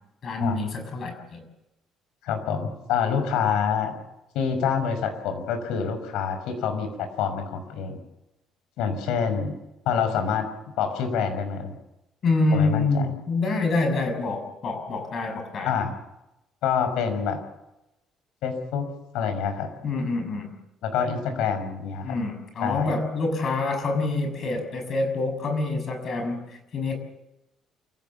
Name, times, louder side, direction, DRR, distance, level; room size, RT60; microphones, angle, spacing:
voice 1, 0.2-1.4 12.2-15.8 19.8-20.5 22.0-26.9, left 3 dB, 40° left, 6 dB, 6.2 m, -26 dB
voice 2, 2.2-3.9 4.3-8.0 8.8-9.5 9.9-10.4 10.8-11.8 12.5-12.8 15.6-15.9 16.6-17.4 18.4-18.9 19.1-19.7 20.8-22.2 22.6-22.9, left 7 dB, 85° left, 7 dB, 6.0 m, -26 dB
28.0 x 16.5 x 7.4 m, 0.93 s
cardioid pair, 165°, 0 cm